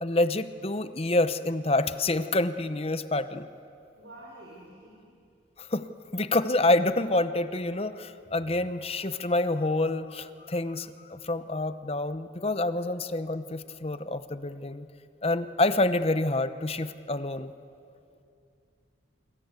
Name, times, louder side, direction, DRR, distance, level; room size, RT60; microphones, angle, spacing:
voice 1, 0.0-3.5 5.6-5.9 6.1-14.9 15.2-17.5, left 2 dB, 30° left, 12 dB, 0.8 m, -27 dB
voice 2, 3.9-5.1 8.2-8.7, right 1 dB, 80° right, -3 dB, 4.8 m, -49 dB
27.5 x 23.0 x 8.2 m, 2.6 s
head